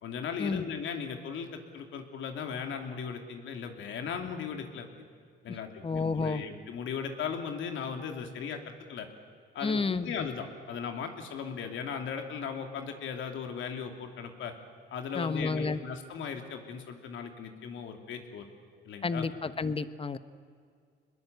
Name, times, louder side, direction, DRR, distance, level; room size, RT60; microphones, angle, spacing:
voice 1, 0.0-4.9 5.4-9.1 9.5-14.5 14.9-18.4 18.8-19.3, left 6 dB, 75° left, 5 dB, 2.9 m, -37 dB
voice 2, 5.8-6.4 9.6-10.1 15.1-15.8 19.0-20.2, left 4 dB, 30° left, 13 dB, 1.1 m, -30 dB
25.5 x 21.0 x 8.2 m, 2.2 s
cardioid pair, 90°, 20 cm